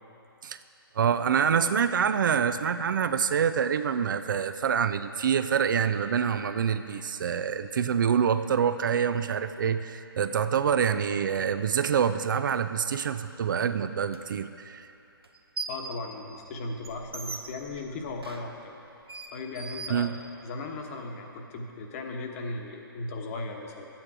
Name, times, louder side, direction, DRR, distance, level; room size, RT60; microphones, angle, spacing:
voice 1, 1.0-14.9 19.9-20.1, right 7 dB, 55° right, 11 dB, 0.5 m, -26 dB
sound 1, 14.1-14.2 15.2-15.9 16.3-20.6, right 4 dB, 85° right, 1.0 m, -41 dB
voice 2, 15.7-18.7 19.3-23.9, left 3 dB, 35° left, 2 dB, 1.2 m, -37 dB
12.0 x 9.1 x 4.8 m, 2.8 s
hypercardioid pair, 140°, 12 cm